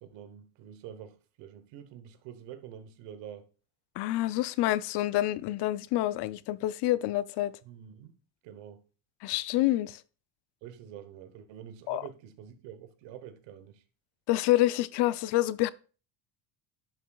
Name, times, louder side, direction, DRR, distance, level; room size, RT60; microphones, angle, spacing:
voice 1, 0.0-3.5 7.6-8.1 8.4-8.8 10.6-13.8, right 9 dB, 85° right, 1.1 m, -46 dB
voice 2, 4.0-7.5 9.2-10.0 11.9-12.0 14.3-15.7, left 15 dB, 65° left, 0.5 m, -27 dB
10.5 x 6.1 x 2.3 m
cardioid pair, 110°, 43 cm